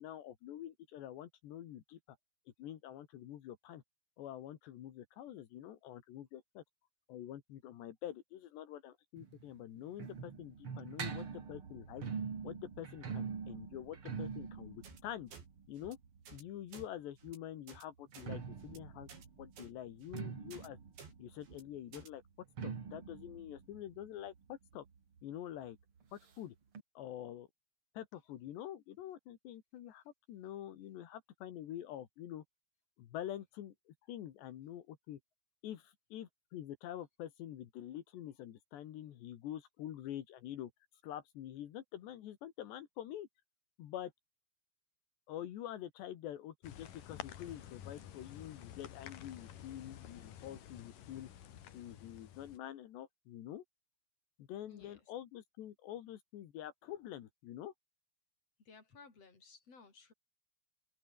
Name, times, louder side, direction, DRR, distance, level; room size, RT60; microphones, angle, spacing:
voice 1, 0.0-2.0 2.6-3.8 4.2-6.6 7.1-12.0 12.4-15.4 15.7-16.0 16.3-19.1 19.4-20.8 21.2-22.2 22.6-24.9 25.2-25.8 26.1-26.6 27.0-27.5 27.9-32.4 33.0-35.2 35.6-40.7 41.0-43.3 43.8-44.1 45.3-51.3 51.7-53.6 54.4-57.7, left 11 dB, 80° left, 4.1 m, -46 dB
sound 1, 9.2-16.9 18.0-25.4 25.6-25.7 26.0-26.1 26.7-26.8, right 6 dB, 35° right, 3.0 m, -45 dB
sound 2, 14.8-15.0 15.3-15.4 15.8-15.9 16.3-16.4 16.7-16.9 17.2-17.4 17.7-17.8 18.1-18.3 18.6-18.8 19.1-19.3 19.6-19.7 20.0-20.2 20.5-20.7 21.0-21.1 21.4-21.6 21.9-22.1, right 5 dB, 85° right, 8.5 m, -54 dB
sound 3, 46.6-52.6, left 10 dB, 55° left, 3.2 m, -51 dB
voice 2, 54.7-55.1 58.6-60.1, left 4 dB, 35° left, 6.5 m, -59 dB
open air
omnidirectional pair, 4.9 m